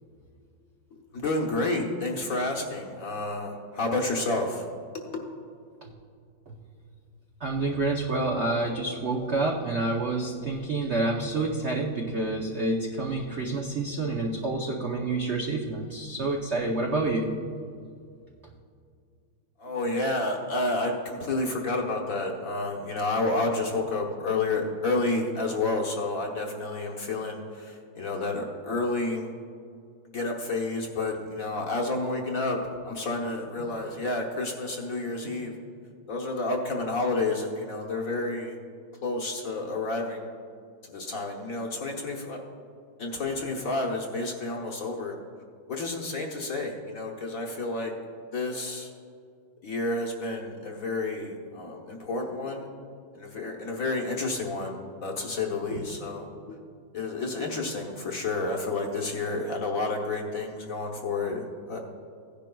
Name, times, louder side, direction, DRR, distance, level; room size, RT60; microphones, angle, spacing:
voice 1, 1.1-4.7 5.1-5.2 19.6-29.3 30.1-32.6 32.8-35.5 36.1-38.6 39.0-40.3 40.9-42.4 43.0-45.1 45.7-47.9 48.3-48.9 49.6-52.7 53.1-56.3 56.9-61.8, left 2 dB, 50° left, 0 dB, 1.2 m, -30 dB
voice 2, 7.4-17.3, right 2 dB, 60° right, 0 dB, 0.7 m, -28 dB
16.0 x 10.5 x 2.3 m, 2.3 s
omnidirectional pair, 2.2 m